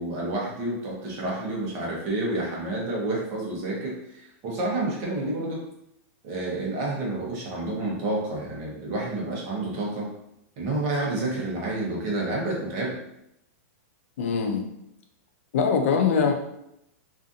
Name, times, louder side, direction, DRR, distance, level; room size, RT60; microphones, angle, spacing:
voice 1, 0.0-5.6 6.2-10.1 10.6-13.0, right 2 dB, 30° right, -3 dB, 0.7 m, -29 dB
voice 2, 14.2-14.6 15.5-16.3, left 6 dB, 55° left, 4 dB, 0.4 m, -22 dB
2.5 x 2.4 x 2.6 m, 0.79 s
supercardioid pair, 165°, 8 cm